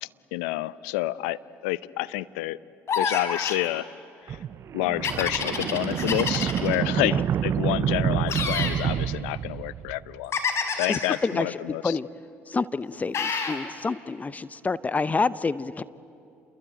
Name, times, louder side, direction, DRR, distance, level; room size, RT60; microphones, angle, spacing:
voice 1, 0.0-2.6 3.0-3.9 4.2-4.4 4.7-10.3 10.7-12.0, left 17 dB, 85° left, 18 dB, 0.6 m, -29 dB
sound 1, 2.9-3.7 5.0-6.8 8.3-8.8 10.3-11.2 13.1-13.6, left 5 dB, 50° left, 4.3 m, -28 dB
sound 2, 4.3-10.1, right 9 dB, 50° right, 0.6 m, -28 dB
voice 2, 10.9-12.1 12.5-15.8, left 4 dB, 25° left, 17 dB, 0.7 m, -28 dB
28.5 x 22.0 x 9.0 m, 2.8 s
supercardioid pair, 70°, 6 cm